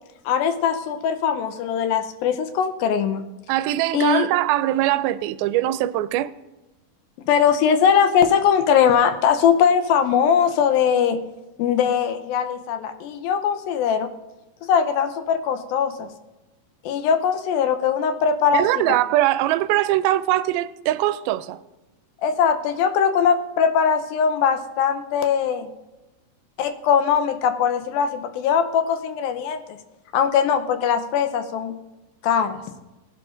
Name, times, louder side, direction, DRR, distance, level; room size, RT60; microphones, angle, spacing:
voice 1, 0.3-3.2 3.9-4.3 7.3-11.2 11.6-14.1 14.7-16.1 16.9-18.6 22.2-25.7 26.6-29.8 30.1-31.8 32.2-32.6, left 7 dB, 85° left, 2.6 m, -20 dB
voice 2, 3.5-6.3 18.5-21.6, right 14 dB, 85° right, 2.4 m, -21 dB
18.5 x 11.5 x 2.6 m
omnidirectional pair, 4.2 m